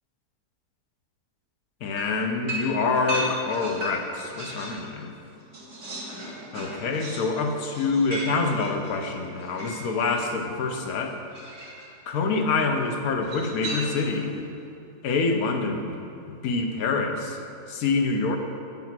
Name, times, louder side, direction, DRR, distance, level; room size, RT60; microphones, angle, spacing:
voice 1, 1.8-5.1 6.5-11.2 12.1-14.4 15.0-15.9 16.3-17.4 17.7-18.4, left 4 dB, 80° left, 3 dB, 1.4 m, -26 dB
sound 1, 2.0-4.9 5.2-10.3 11.3-11.9 13.2-14.3, right 1 dB, 55° right, 2.2 m, -36 dB
9.4 x 5.6 x 5.9 m, 2.7 s
omnidirectional pair, 1.5 m